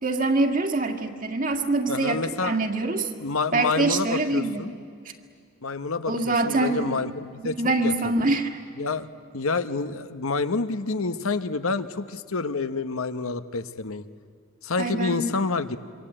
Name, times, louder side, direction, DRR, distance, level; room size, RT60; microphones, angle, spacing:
voice 1, 0.0-3.1 3.5-4.6 6.1-7.0 7.4-8.6 14.8-15.3, right 2 dB, 40° right, 4 dB, 2.0 m, -24 dB
voice 2, 1.9-2.6 3.2-4.7 5.6-8.1 8.8-9.1 9.3-14.1 14.6-15.8, left 3 dB, 85° left, 10 dB, 1.1 m, -28 dB
27.0 x 24.0 x 8.8 m, 2.3 s
head